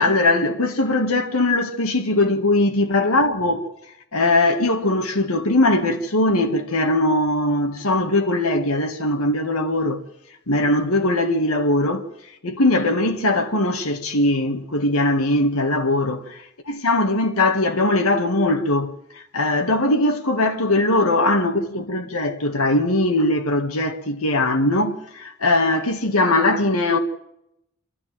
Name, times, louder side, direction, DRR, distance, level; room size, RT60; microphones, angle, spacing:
voice 1, 0.0-3.7 4.1-10.0 10.5-12.1 12.4-27.0, left 2 dB, 85° left, 1.9 m, -20 dB
29.0 x 12.5 x 7.6 m
head